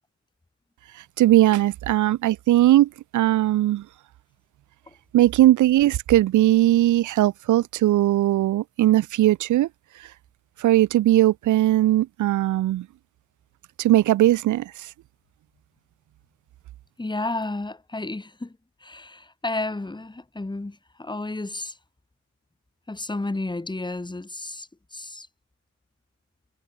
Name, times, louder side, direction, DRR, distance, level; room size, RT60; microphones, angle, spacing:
voice 1, 0.9-3.9 5.1-9.7 10.0-10.1 10.6-12.9 13.8-14.9, right 14 dB, 75° right, 1.3 m, -19 dB
voice 2, 17.0-21.8 22.9-25.3, left 2 dB, 15° left, 6.1 m, -32 dB
cardioid pair, 90°, 30 cm